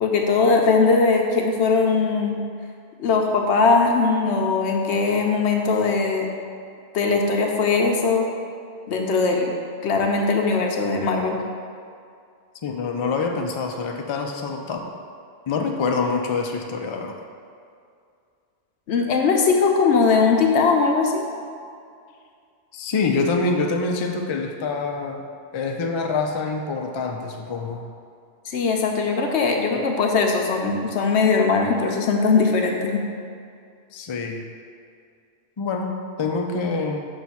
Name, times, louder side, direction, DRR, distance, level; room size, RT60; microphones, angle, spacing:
voice 1, 0.0-2.5 3.0-6.3 6.9-8.3 8.9-9.5 9.8-11.4 18.9-21.2 28.5-33.1, left 4 dB, 90° left, 2 dB, 1.0 m, -20 dB
voice 2, 12.6-14.9 15.5-17.2 22.7-25.3 25.5-27.9 33.9-34.5 35.6-37.1, left 4 dB, 45° left, 2 dB, 0.3 m, -26 dB
6.1 x 3.2 x 5.6 m, 2.3 s
omnidirectional pair, 1.1 m